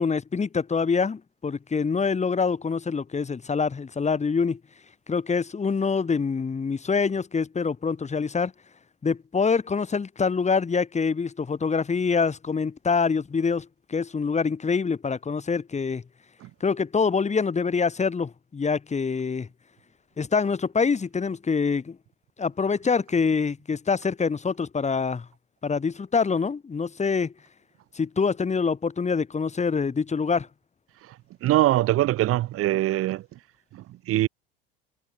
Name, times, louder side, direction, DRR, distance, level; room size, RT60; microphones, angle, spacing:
voice 1, 0.0-4.6 5.1-8.5 9.0-16.0 16.6-19.5 20.2-22.0 22.4-25.3 25.6-27.3 27.9-30.5, left 5 dB, 25° left, 5.5 m, -25 dB
voice 2, 31.4-33.2 33.7-34.3, right 15 dB, 50° right, 1.9 m, -22 dB
hypercardioid pair, 85°, 29 cm